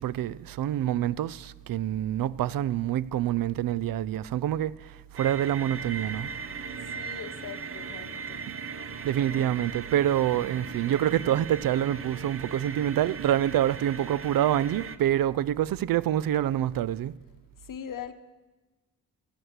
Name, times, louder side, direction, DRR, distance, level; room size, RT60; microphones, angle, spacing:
voice 1, 0.0-6.3 9.0-17.1, right 11 dB, 65° right, 0.5 m, -26 dB
sound 1, 5.2-15.0, right 5 dB, 35° right, 0.7 m, -38 dB
voice 2, 6.9-8.5 9.2-9.6 17.6-18.1, left 9 dB, 60° left, 0.9 m, -41 dB
15.5 x 6.2 x 8.0 m
cardioid pair, 60°, 36 cm